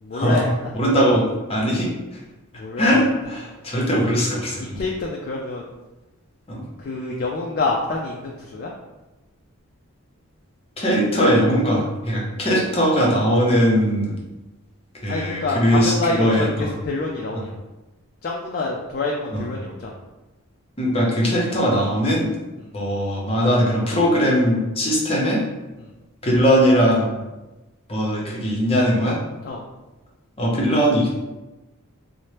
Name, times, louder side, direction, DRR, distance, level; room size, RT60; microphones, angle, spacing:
voice 1, 0.0-0.5 2.5-3.0 4.6-5.7 6.8-8.7 15.1-17.6 18.2-20.0 22.6-22.8 25.8-25.9 29.4-29.6, left 3 dB, 45° left, -1 dB, 0.3 m, -27 dB
voice 2, 0.7-1.2 1.5-2.2 2.8-4.8 6.5-6.6 10.8-14.1 15.0-16.7 19.3-19.4 20.8-22.3 22.7-25.4 26.2-27.1 27.9-29.2 30.4-31.1, equal, 25° left, -3 dB, 0.7 m, -20 dB
4.2 x 2.1 x 3.2 m, 1.1 s
head